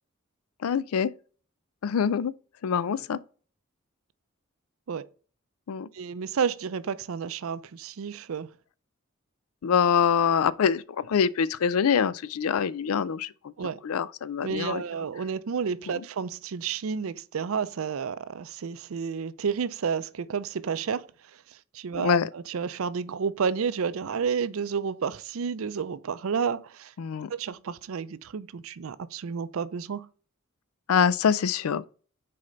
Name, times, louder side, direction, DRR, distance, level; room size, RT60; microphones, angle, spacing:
voice 1, 0.6-1.1 1.8-2.3 2.6-3.2 5.7-5.9 9.6-13.5 13.8-14.8 15.9-16.0 21.9-22.3 27.0-27.3 30.9-31.8, left 7 dB, 90° left, 0.4 m, -25 dB
voice 2, 5.9-8.5 13.6-13.8 14.4-21.1 21.7-26.9 27.3-30.1, right 6 dB, 75° right, 0.4 m, -31 dB
6.5 x 4.3 x 3.9 m
head